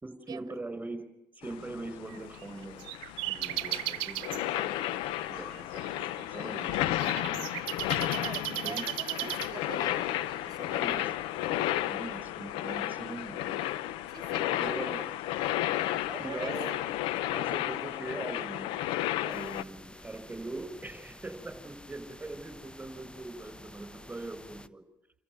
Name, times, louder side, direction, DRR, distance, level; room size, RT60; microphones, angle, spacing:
voice 1, 0.0-1.1 1.4-2.9 3.3-4.9 5.3-7.5 8.5-8.9 9.2-9.3 10.8-11.2 11.9-13.6 14.2-15.1 16.2-16.8 17.3-18.8 19.2-24.8, right 2 dB, 15° right, 5.2 m, -42 dB
sound 1, 1.4-19.6, left 14 dB, 90° left, 0.8 m, -33 dB
sound 2, 2.1-4.4 5.1-9.9, right 20 dB, 90° right, 0.9 m, -36 dB
voice 2, 8.1-10.1 10.4-11.1 14.1-14.9 16.1-16.5, right 7 dB, 50° right, 1.3 m, -44 dB
sound 3, 19.3-24.7, left 1 dB, 10° left, 1.1 m, -50 dB
28.0 x 14.5 x 9.5 m
supercardioid pair, 70°, 9 cm